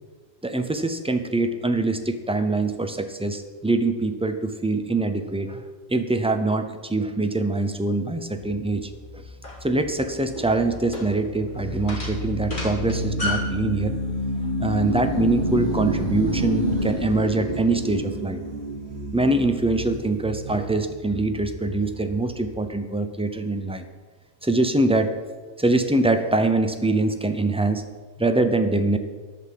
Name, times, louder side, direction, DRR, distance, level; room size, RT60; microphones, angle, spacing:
voice 1, 0.4-5.6 5.9-9.2 9.6-13.9 14.6-18.4 19.1-23.8 24.4-25.2 25.6-27.8 28.2-29.0, right 2 dB, 10° right, 7 dB, 0.3 m, -24 dB
sound 1, 8.7-22.5, equal, 55° right, 3.6 m, -30 dB
sound 2, 9.4-13.6, left 1 dB, 40° left, 2.8 m, -32 dB
11.5 x 5.8 x 7.6 m, 1.4 s
omnidirectional pair, 1.3 m